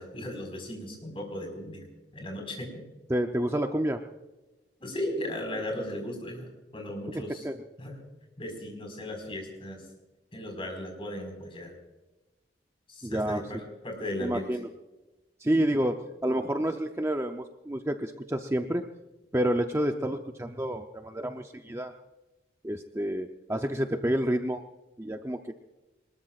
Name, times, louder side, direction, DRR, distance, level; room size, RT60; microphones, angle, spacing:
voice 1, 0.0-1.8 2.1-2.8 4.8-7.5 7.8-8.0 8.4-9.8 10.3-11.7 12.9-14.5, left 1 dB, 30° left, 2 dB, 4.8 m, -36 dB
voice 2, 3.1-4.0 7.4-7.6 13.0-13.4 14.2-14.7 15.4-18.8 19.3-21.9 22.6-24.6 25.0-25.5, right 1 dB, 15° right, 5 dB, 0.6 m, -29 dB
23.5 x 20.5 x 2.5 m, 1.1 s
head